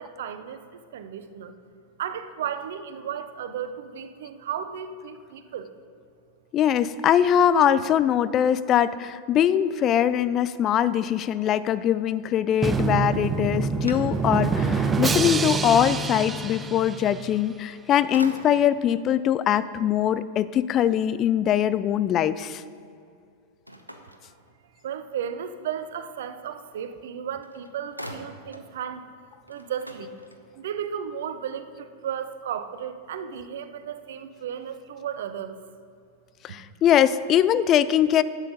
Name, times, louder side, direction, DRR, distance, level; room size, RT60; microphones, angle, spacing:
voice 1, 0.0-1.5 2.0-5.7 24.8-29.1 29.5-30.1 30.5-35.6 36.5-36.6, right 8 dB, 60° right, 10 dB, 0.7 m, -34 dB
voice 2, 6.5-22.6 36.4-38.2, left 10 dB, 30° left, 15 dB, 0.4 m, -22 dB
Drum, 12.6-17.5, right 4 dB, 15° right, 0.6 m, -26 dB
sound 1, 13.2-14.6 15.1-15.2 17.5-17.8 18.1-18.9 23.7-24.9 27.0-27.1 27.4-28.7 29.1-29.2 29.4-30.7, equal, 90° right, 0.8 m, -43 dB
11.0 x 8.2 x 5.2 m, 2.3 s
figure-of-eight pair, 90°, 0 cm